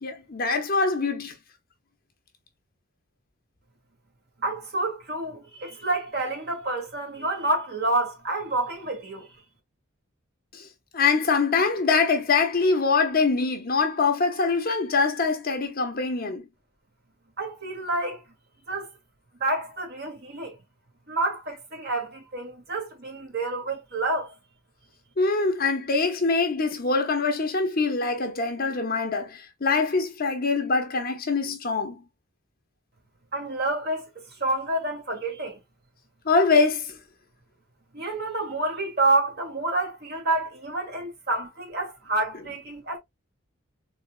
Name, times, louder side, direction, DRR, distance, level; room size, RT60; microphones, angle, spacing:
voice 1, 0.0-1.3 10.5-10.7 10.9-16.5 25.2-32.0 36.3-37.0, left 4 dB, 45° left, 0.9 m, -24 dB
voice 2, 4.4-9.3 17.4-18.2 18.7-18.9 19.4-20.6 21.1-24.3 33.3-35.6 37.9-43.0, right 2 dB, 50° right, 1.9 m, -28 dB
4.2 x 3.6 x 2.2 m
head